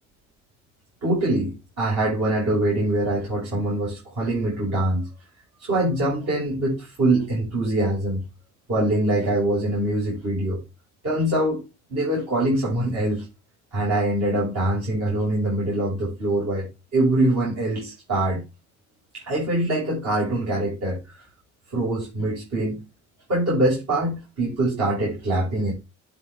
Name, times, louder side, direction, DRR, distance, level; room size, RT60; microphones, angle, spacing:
voice 1, 1.0-5.1 5.6-8.2 8.7-10.6 11.0-11.6 11.9-13.3 13.7-18.4 19.1-21.3 21.7-22.8 23.3-25.7, right 1 dB, 60° right, 6.8 m, -24 dB
11.0 x 5.9 x 3.7 m
cardioid pair, 90°, 30 cm